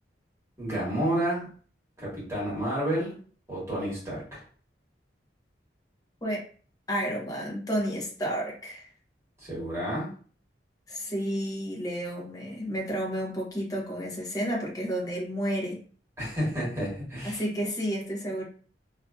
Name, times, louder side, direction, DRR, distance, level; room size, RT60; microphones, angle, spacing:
voice 1, 0.6-1.5 2.0-3.1 3.5-4.4 9.4-10.1 16.2-17.4, right 1 dB, 15° right, -7 dB, 1.4 m, -30 dB
voice 2, 6.9-8.9 10.9-15.8 17.2-18.4, equal, 20° left, -2 dB, 0.7 m, -31 dB
2.6 x 2.5 x 2.3 m, 0.43 s
head